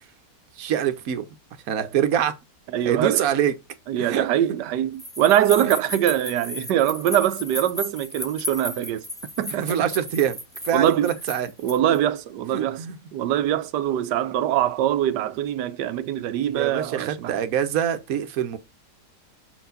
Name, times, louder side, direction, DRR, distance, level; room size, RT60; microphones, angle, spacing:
voice 1, 0.6-1.2 1.7-2.3 2.8-3.5 4.0-4.3 5.6-5.7 9.6-10.4 10.6-11.5 12.5-13.0 16.5-18.6, right 9 dB, 60° right, 1.3 m, -24 dB
voice 2, 2.7-3.3 3.9-9.0 9.4-9.7 10.7-11.1 11.6-12.8 13.1-17.4, right 11 dB, 80° right, 1.3 m, -23 dB
sound 1, 5.0-12.0, left 1 dB, 5° left, 0.4 m, -35 dB
6.7 x 4.5 x 3.9 m
omnidirectional pair, 1.8 m